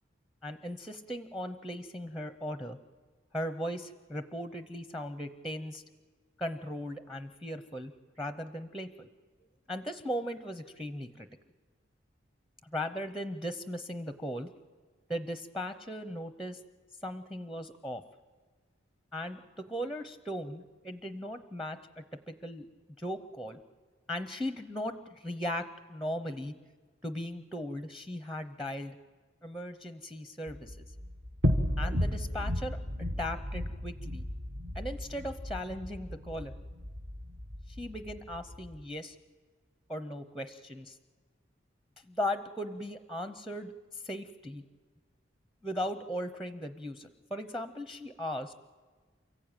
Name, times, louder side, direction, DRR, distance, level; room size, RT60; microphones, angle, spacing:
voice 1, 0.4-2.8 3.3-5.8 6.4-9.1 9.7-11.3 12.7-14.5 15.1-16.6 17.0-18.0 19.1-22.7 23.0-23.6 24.1-25.6 25.9-26.5 27.0-29.0 29.4-30.9 31.8-34.3 34.7-36.5 37.7-39.2 39.9-41.0 42.0-44.6 45.6-48.5, equal, ahead, 10 dB, 0.7 m, -38 dB
sound 1, 30.5-38.8, left 1 dB, 55° right, 1.6 m, -34 dB
28.5 x 15.0 x 8.9 m, 1.5 s
head